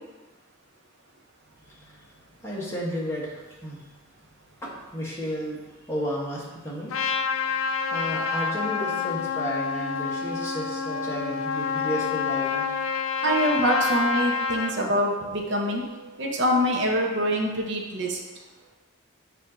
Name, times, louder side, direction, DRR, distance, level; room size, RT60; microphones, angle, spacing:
voice 1, 1.6-2.0 2.4-3.8 4.6-6.9 7.9-12.7, equal, 15° left, -5 dB, 1.2 m, -33 dB
Trumpet, 6.9-14.7, left 5 dB, 90° left, 0.6 m, -28 dB
voice 2, 13.2-18.2, equal, 55° right, 1 dB, 0.7 m, -25 dB
7.4 x 2.8 x 4.9 m, 1.2 s
head